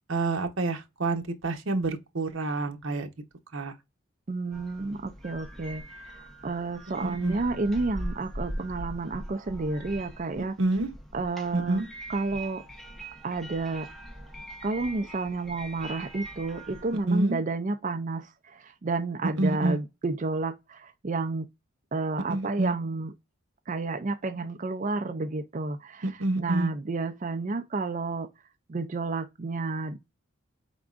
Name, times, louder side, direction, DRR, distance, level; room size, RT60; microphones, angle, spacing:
voice 1, 0.1-3.1 3.5-3.7 7.0-7.4 10.6-10.9 11.5-11.9 17.1-17.4 19.4-19.8 22.3-22.7 26.0-26.7, right 2 dB, 70° right, 0.9 m, -27 dB
voice 2, 4.3-10.5 11.1-11.8 12.1-12.6 13.2-13.9 14.6-21.5 21.9-23.1 23.7-26.1 26.4-28.3 28.7-30.0, right 3 dB, 35° right, 0.4 m, -31 dB
sound 1, 4.5-17.0, right 1 dB, ahead, 0.7 m, -41 dB
4.6 x 3.6 x 2.4 m
head